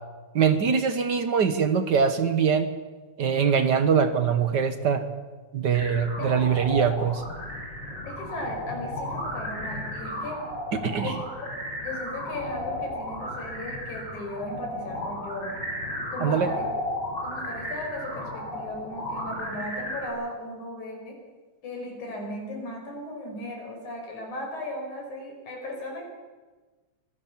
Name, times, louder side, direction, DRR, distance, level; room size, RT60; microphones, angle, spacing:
voice 1, 0.3-2.7 3.2-5.0 5.5-7.2 10.8-11.1 16.2-16.5, right 6 dB, 60° right, 10 dB, 1.1 m, -23 dB
sound 1, 5.7-20.1, left 1 dB, 25° left, 7.5 m, -34 dB
voice 2, 8.1-10.4 11.0-11.5 11.8-15.5 16.1-16.7 17.2-21.2 21.6-26.1, left 1 dB, 70° left, 1 dB, 7.0 m, -36 dB
24.5 x 18.5 x 7.3 m, 1.3 s
omnidirectional pair, 3.6 m